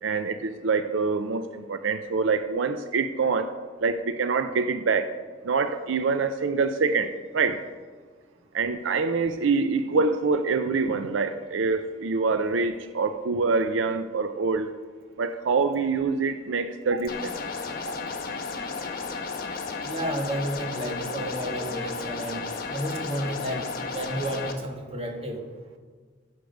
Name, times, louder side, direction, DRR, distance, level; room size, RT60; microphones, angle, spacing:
voice 1, 0.0-3.5 3.8-5.1 5.4-7.6 8.5-14.7 15.2-17.4 17.9-18.0, right 4 dB, 85° right, 9 dB, 0.5 m, -25 dB
sound 1, 17.1-24.5, left 4 dB, 50° left, 1.1 m, -33 dB
voice 2, 19.8-22.4 22.7-23.7 23.9-25.4, right 1 dB, 30° right, 2 dB, 1.5 m, -31 dB
15.5 x 6.3 x 5.2 m, 1.5 s
head